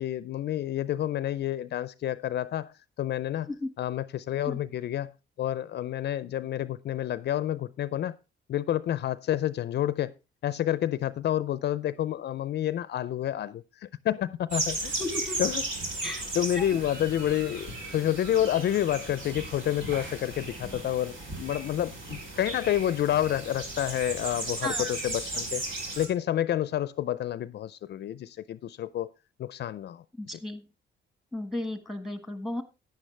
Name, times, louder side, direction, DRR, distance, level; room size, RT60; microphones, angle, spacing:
voice 1, 0.0-3.5 3.8-5.1 5.4-8.2 8.5-10.1 10.4-14.9 15.4-15.6 16.3-25.6 26.0-29.1 29.4-30.4, left 12 dB, 60° left, 0.4 m, -29 dB
sound 1, 14.5-26.1, right 2 dB, 75° right, 3.5 m, -36 dB
voice 2, 15.0-15.4 16.0-16.3 16.6-16.7 24.6-24.9 30.2-30.6 31.3-32.6, left 1 dB, ahead, 1.4 m, -34 dB
10.0 x 9.8 x 3.2 m
cardioid pair, 90°, 20 cm